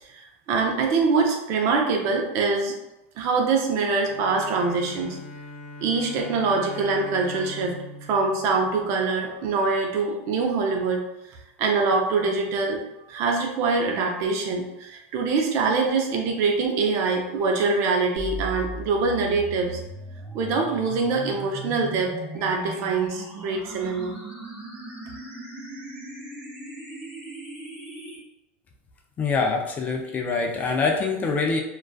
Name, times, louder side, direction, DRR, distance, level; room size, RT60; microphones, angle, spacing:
voice 1, 0.1-2.7 3.2-5.2 5.8-7.8 8.1-11.0 11.6-12.8 13.1-19.8 20.3-24.1, right 4 dB, 50° right, 1 dB, 0.5 m, -24 dB
Bowed string instrument, 4.0-9.4, left 1 dB, 75° left, 0.7 m, -41 dB
sound 1, 18.2-28.2, right 2 dB, 15° right, 0.8 m, -38 dB
voice 2, 29.2-31.6, left 4 dB, 25° left, 2 dB, 0.3 m, -24 dB
2.4 x 2.3 x 2.3 m, 0.91 s
supercardioid pair, 125°, 7 cm